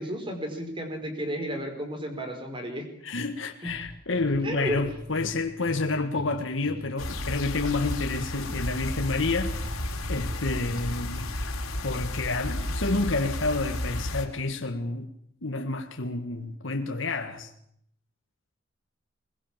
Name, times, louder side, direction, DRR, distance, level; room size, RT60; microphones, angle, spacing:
voice 1, 0.0-2.9 3.6-3.7 4.4-4.8, equal, 25° right, 4.7 m, -33 dB
voice 2, 3.0-9.5 10.1-11.3 11.8-15.1 15.4-17.5, left 3 dB, 60° left, 1.7 m, -29 dB
sound 1, 3.6-11.6, left 1 dB, 50° right, 7.1 m, -43 dB
sound 2, 7.0-14.3, left 1 dB, 85° left, 3.6 m, -32 dB
22.0 x 21.5 x 7.4 m
head